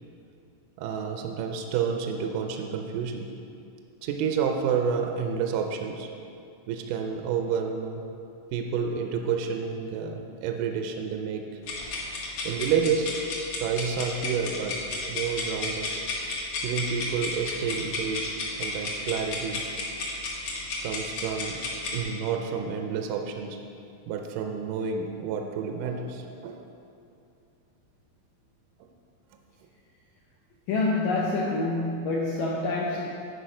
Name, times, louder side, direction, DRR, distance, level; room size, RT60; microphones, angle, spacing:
voice 1, 0.8-3.3 4.0-6.1 6.7-8.1 8.5-11.5 12.4-13.1 13.5-14.8 15.1-15.9 16.6-19.6 20.8-21.6 21.9-23.6 24.1-26.7 28.8-28.9, right 6 dB, 80° right, 4 dB, 2.0 m, -29 dB
sound 1, 11.6-22.0, left 3 dB, 55° left, 1.9 m, -32 dB
voice 2, 30.7-33.1, left 2 dB, 80° left, -3 dB, 1.7 m, -27 dB
10.0 x 5.1 x 5.0 m, 2.6 s
omnidirectional pair, 4.1 m